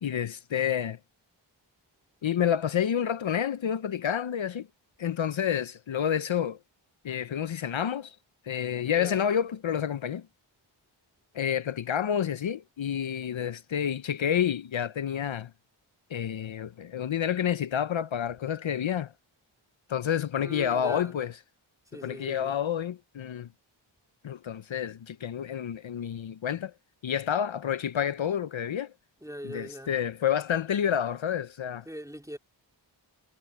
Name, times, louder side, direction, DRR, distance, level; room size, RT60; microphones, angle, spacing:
voice 1, 0.0-1.0 2.2-4.7 5.0-6.6 7.0-8.2 8.5-10.3 11.3-15.5 16.1-19.1 19.9-21.3 22.0-23.5 24.2-26.7 27.0-28.9 29.4-31.8, left 9 dB, 70° left, 0.7 m, -29 dB
voice 2, 8.8-9.2 20.4-21.1 21.9-22.6 29.2-29.9 31.8-32.4, equal, 5° right, 3.2 m, -41 dB
cardioid pair, 40°, 49 cm